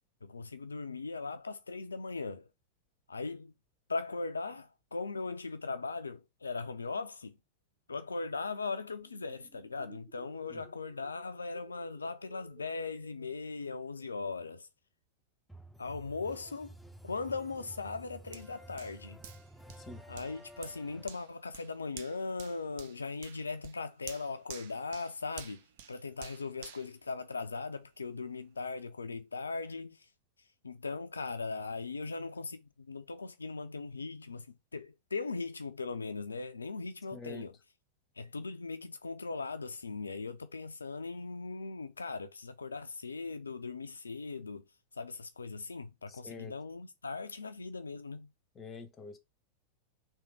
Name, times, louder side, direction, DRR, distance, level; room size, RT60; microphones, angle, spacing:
voice 1, 0.2-2.5 3.1-3.5 3.9-7.4 7.9-14.7 15.8-16.7 17.0-19.2 20.1-25.6 25.9-30.1 30.4-37.5 38.2-44.6 44.9-48.3, left 4 dB, 75° left, 0.3 m, -39 dB
sound 1, 9.0-14.3, right 5 dB, 35° right, 1.5 m, -61 dB
sound 2, 15.5-21.1, right 1 dB, ahead, 0.4 m, -52 dB
Hands, 18.3-27.8 28.3-28.4, right 8 dB, 50° right, 0.6 m, -51 dB
voice 2, 37.1-37.5 46.1-46.5 48.5-49.2, left 4 dB, 20° left, 0.8 m, -46 dB
3.5 x 2.8 x 4.6 m
figure-of-eight pair, 90°, 0 cm